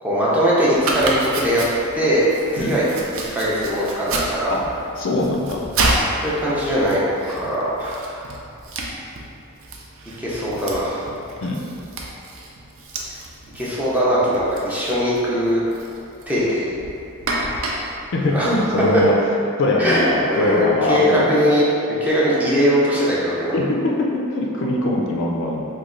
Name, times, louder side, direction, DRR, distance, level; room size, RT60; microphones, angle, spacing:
voice 1, 0.0-1.6 1.9-2.3 2.5-2.8 3.3-4.6 6.2-7.0 7.3-8.2 10.2-11.1 13.5-15.6 16.3-16.7 18.3-18.6 19.8-21.6 22.0-23.5, equal, 5° right, -8 dB, 0.5 m, -20 dB
Domestic sounds home sounds, 0.8-19.2, right 2 dB, 60° right, 0.4 m, -30 dB
voice 2, 5.0-5.7 11.4-11.6 18.1-19.1 19.6-21.4 23.5-25.6, left 1 dB, 60° left, -1 dB, 0.4 m, -21 dB
3.1 x 2.3 x 3.7 m, 2.6 s
head